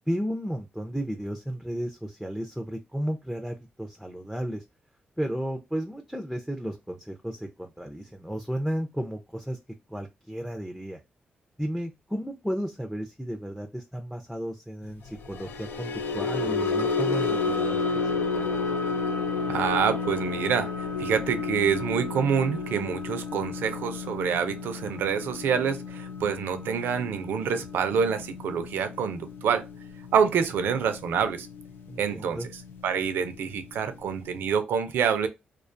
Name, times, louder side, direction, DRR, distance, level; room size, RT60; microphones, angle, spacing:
voice 1, 0.1-4.6 5.2-9.6 9.9-11.0 11.6-18.5 31.9-32.5, equal, ahead, 0.4 m, -33 dB
sound 1, 15.2-31.6 31.9-32.2 32.6-32.8, left 4 dB, 85° left, 0.4 m, -31 dB
voice 2, 19.5-29.6 30.1-31.5 32.0-32.5 32.8-35.3, right 7 dB, 85° right, 0.4 m, -27 dB
2.3 x 2.3 x 2.5 m
cardioid pair, 75°, 3 cm